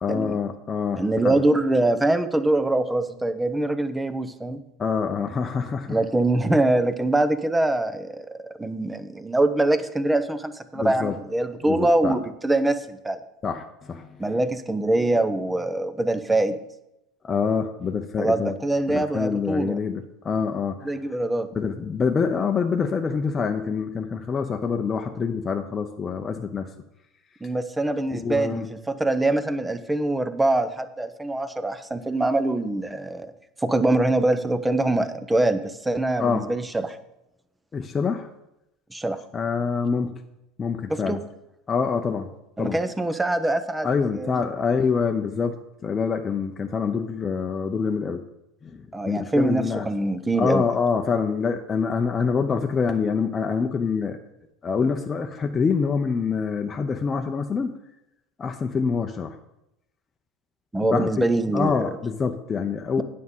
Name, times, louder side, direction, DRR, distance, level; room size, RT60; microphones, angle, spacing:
voice 1, 0.0-1.4 4.8-6.0 10.7-11.2 11.7-12.2 13.4-14.3 17.2-18.5 18.9-20.9 21.5-26.7 28.1-28.7 36.2-36.5 37.7-38.3 39.3-40.1 40.6-41.2 41.7-42.3 42.6-42.8 43.8-45.6 45.8-48.2 48.6-49.9 50.4-54.2 54.6-57.7 58.4-59.4 60.8-61.2 61.5-63.0, left 5 dB, 30° left, 4 dB, 0.8 m, -26 dB
voice 2, 1.0-4.6 5.9-13.2 14.2-16.5 18.2-19.8 20.8-21.5 27.4-33.3 33.6-37.0 38.9-39.2 40.9-41.2 42.6-44.3 48.9-50.6 60.7-61.9, right 2 dB, 10° right, 11 dB, 0.9 m, -24 dB
9.4 x 6.5 x 5.5 m, 0.87 s
hypercardioid pair, 85°, 0 cm